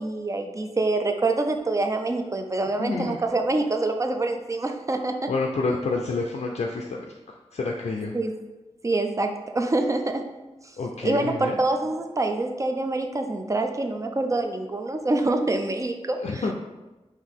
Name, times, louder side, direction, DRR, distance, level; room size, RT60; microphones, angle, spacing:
voice 1, 0.0-5.3 8.0-8.3 8.8-10.3 11.0-16.4, right 2 dB, 30° right, 5 dB, 0.4 m, -26 dB
voice 2, 2.8-3.2 5.3-7.0 7.3-8.1 10.8-11.6 16.2-16.5, left 3 dB, 70° left, 0 dB, 0.4 m, -28 dB
4.0 x 2.6 x 3.5 m, 1.1 s
wide cardioid pair, 70°, 11 cm